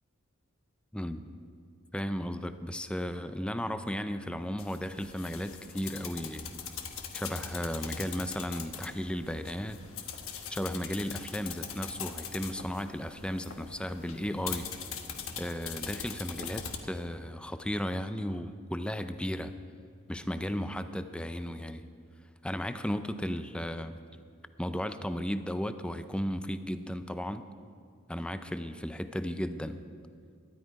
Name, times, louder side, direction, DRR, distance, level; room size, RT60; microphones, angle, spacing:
voice 1, 0.9-1.3 1.9-6.5 7.1-9.8 10.5-14.7 15.4-19.5 20.1-21.9 22.4-24.0 24.6-27.4 28.1-29.8, equal, 5° left, 10 dB, 0.5 m, -35 dB
sound 1, 4.6-16.8, left 7 dB, 70° left, 1.1 m, -42 dB
18.0 x 12.5 x 4.8 m, 2.3 s
head